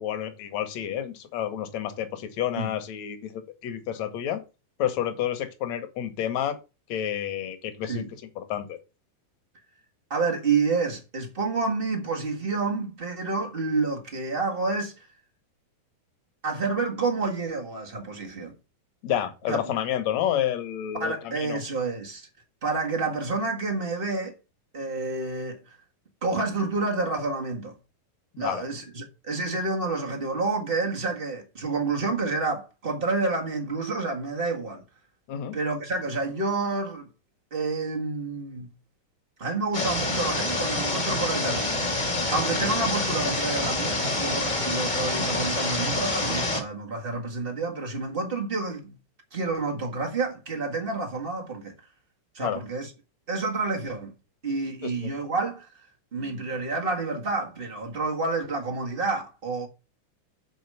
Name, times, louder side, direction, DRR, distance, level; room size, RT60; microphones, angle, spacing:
voice 1, 0.0-4.4 4.8-6.6 6.9-8.0 8.4-8.8 19.0-21.6 28.3-28.6 35.3-35.6 52.4-52.6 54.8-55.1, left 10 dB, 65° left, 2.0 m, -30 dB
voice 2, 10.1-14.9 16.4-18.5 19.5-19.6 21.0-22.3 22.6-24.3 24.7-25.7 26.2-27.7 28.4-34.8 35.5-37.1 37.5-38.7 39.4-42.0 42.3-48.9 49.3-51.7 52.3-52.9 53.3-54.1 54.4-55.7 56.1-59.7, right 3 dB, 90° right, 0.5 m, -29 dB
sound 1, 39.7-46.6, left 2 dB, 30° left, 0.8 m, -27 dB
7.8 x 4.9 x 6.7 m
omnidirectional pair, 4.2 m